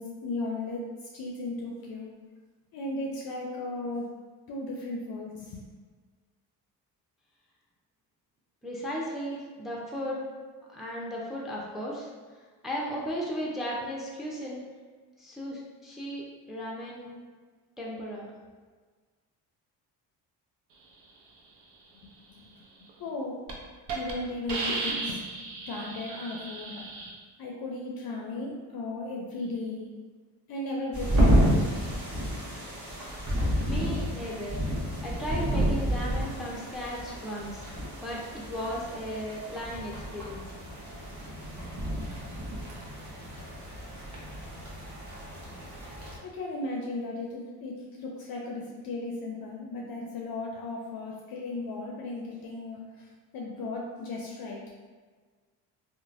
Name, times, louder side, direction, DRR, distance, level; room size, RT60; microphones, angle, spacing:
voice 1, 0.0-2.1 2.7-4.1 4.5-5.7 22.0-22.1 23.0-23.4 23.9-25.2 25.7-26.8 27.4-29.9 30.5-31.7 45.5-45.6 46.2-53.1 53.3-54.6, left 2 dB, 55° left, -2 dB, 0.5 m, -36 dB
voice 2, 8.6-10.3 10.7-12.1 12.6-14.6 15.2-17.1 17.8-18.2 33.4-34.6 35.0-37.6 38.0-40.5, equal, ahead, -4 dB, 0.6 m, -35 dB
Hiss, 22.9-23.1 23.5-23.6 23.9-24.1 24.5-27.1, right 3 dB, 60° right, 0.7 m, -34 dB
sound 1, 30.9-46.2, equal, 40° right, 1.0 m, -30 dB
3.0 x 2.1 x 2.5 m, 1.5 s
supercardioid pair, 60°, 45 cm